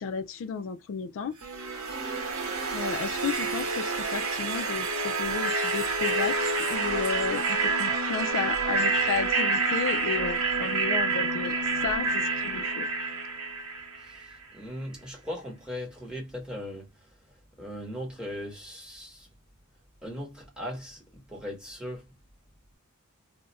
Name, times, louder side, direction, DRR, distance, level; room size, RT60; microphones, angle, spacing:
voice 1, 0.0-1.4 2.7-12.9, left 6 dB, 60° left, 0.3 m, -33 dB
sound 1, 1.4-14.3, right 3 dB, 65° right, 0.8 m, -28 dB
voice 2, 14.0-19.3 20.0-22.1, equal, 5° right, 1.0 m, -39 dB
2.4 x 2.1 x 3.9 m
head